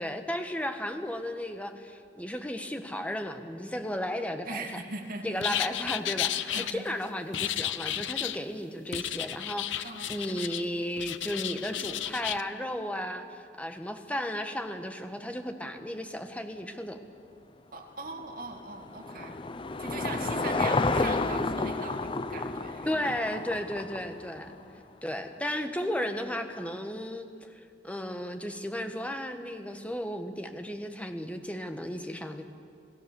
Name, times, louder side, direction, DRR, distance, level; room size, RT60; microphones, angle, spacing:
voice 1, 0.0-4.7 5.2-17.0 22.9-24.5 25.0-27.3 27.6-32.4, equal, 10° left, 6 dB, 1.3 m, -34 dB
voice 2, 4.4-5.4 6.5-6.9 9.6-10.4 17.7-19.4 19.8-23.2 24.5-24.8, right 3 dB, 50° right, 3 dB, 2.2 m, -41 dB
sound 1, 5.4-6.7 7.3-8.4 8.9-10.6 11.0-12.4, left 12 dB, 90° left, 0.7 m, -33 dB
Car passing by / Engine, 18.1-24.6, left 3 dB, 30° left, 0.6 m, -31 dB
28.0 x 17.5 x 7.0 m, 2.5 s
head